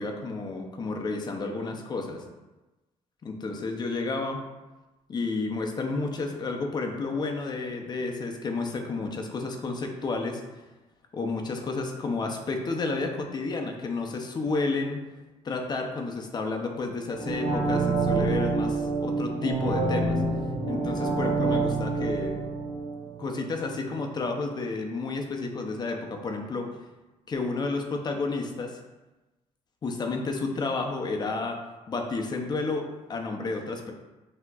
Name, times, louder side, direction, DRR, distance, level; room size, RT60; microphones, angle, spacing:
voice 1, 0.0-2.3 3.2-4.4 5.1-10.4 11.1-15.0 15.4-20.2 20.7-22.3 23.2-26.7 27.3-28.8 29.8-31.6 31.9-33.9, left 3 dB, 35° left, 3 dB, 0.5 m, -31 dB
sound 1, 17.1-24.0 24.3-24.4, right 3 dB, 85° right, 1.2 m, -27 dB
5.8 x 2.8 x 2.3 m, 1.1 s
cardioid pair, 135°, 13 cm